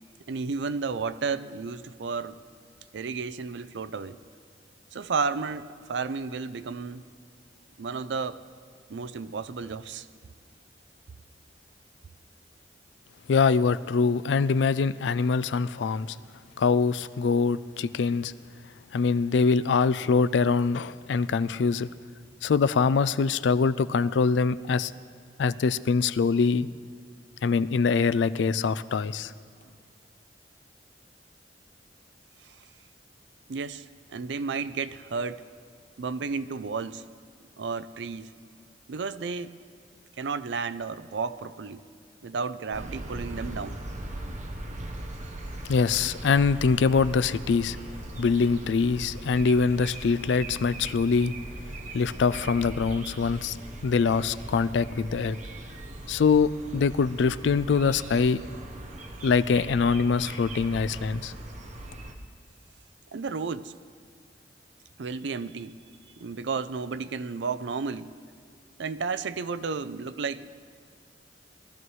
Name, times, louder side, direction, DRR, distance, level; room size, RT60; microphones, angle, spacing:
voice 1, 0.3-2.4 2.9-4.2 4.9-7.0 7.8-8.4 8.9-10.1 32.4-32.7 33.5-35.4 36.0-37.0 37.6-38.3 38.9-39.6 40.2-41.8 42.2-43.8 63.1-63.7 65.0-65.8 66.2-68.1 68.8-70.5, right 5 dB, 85° right, 14 dB, 0.5 m, -32 dB
voice 2, 13.3-16.2 16.6-18.3 18.9-21.9 22.4-24.9 25.4-26.7 27.4-29.3 45.7-47.8 48.2-51.3 51.9-53.6 53.8-55.4 56.1-58.4 59.2-61.3, left 5 dB, 85° left, 15 dB, 0.4 m, -24 dB
sound 1, 42.7-62.1, right 1 dB, 45° right, 1.0 m, -39 dB
22.0 x 14.0 x 3.2 m, 2.1 s
head